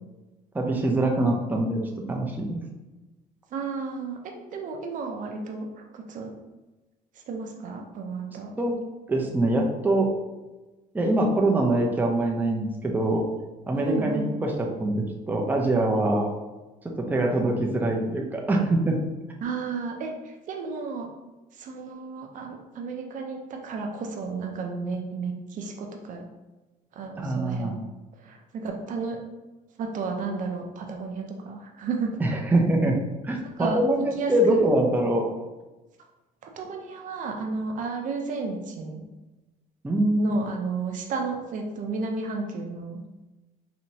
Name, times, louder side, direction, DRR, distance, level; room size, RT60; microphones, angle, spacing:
voice 1, 0.5-1.8 2.1-2.6 8.6-8.8 9.1-10.1 10.9-13.2 13.7-16.3 17.0-19.0 27.2-27.7 32.2-33.0 33.2-35.2 39.8-40.3, right 1 dB, 10° right, 0 dB, 0.6 m, -24 dB
voice 2, 3.5-6.3 7.3-8.5 13.8-14.3 19.4-21.1 21.5-26.3 26.9-27.7 28.2-29.2 29.8-32.2 33.6-33.8 34.1-34.6 36.4-39.0 40.2-43.0, right 4 dB, 55° right, 3 dB, 0.6 m, -32 dB
4.2 x 2.8 x 2.7 m, 1.1 s
cardioid pair, 110°, 16 cm